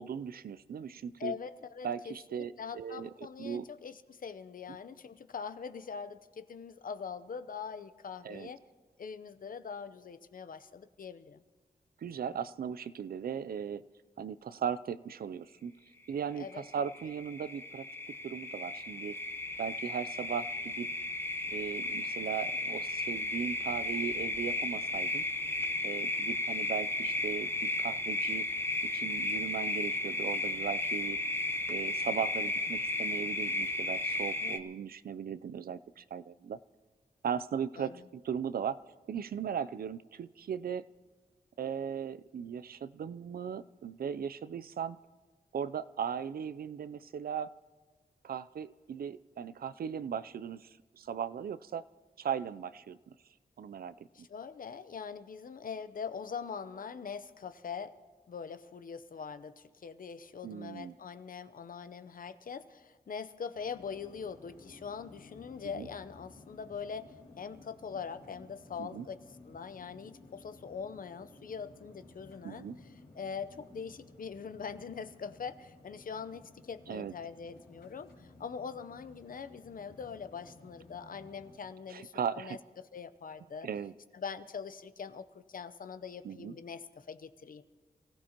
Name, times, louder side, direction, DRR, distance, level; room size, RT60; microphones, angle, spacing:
voice 1, 0.0-1.3 1.8-3.1 3.4-3.7 8.2-8.5 12.0-13.8 14.2-15.7 16.1-17.9 18.2-19.1 19.6-20.9 21.5-25.3 25.8-27.5 27.8-28.5 28.9-31.2 31.7-36.6 37.2-38.8 39.1-40.8 41.6-45.0 45.5-47.5 48.2-51.8 52.2-53.1 53.6-53.9 60.4-60.9 65.7-65.9 68.8-69.1 72.4-72.8 76.9-77.1 81.9-82.6 83.6-83.9 86.2-86.5, right 7 dB, 70° right, 16 dB, 0.4 m, -37 dB
voice 2, 1.2-8.6 9.0-11.4 16.4-16.6 34.4-34.7 37.8-38.0 54.1-58.0 58.3-72.7 73.2-83.7 84.1-87.6, left 6 dB, 60° left, 12 dB, 0.7 m, -43 dB
sound 1, 16.5-34.6, left 2 dB, 15° left, 0.8 m, -34 dB
sound 2, 63.5-81.6, left 2 dB, 90° left, 3.7 m, -56 dB
28.0 x 16.0 x 2.9 m, 1.3 s
wide cardioid pair, 105°, 16 cm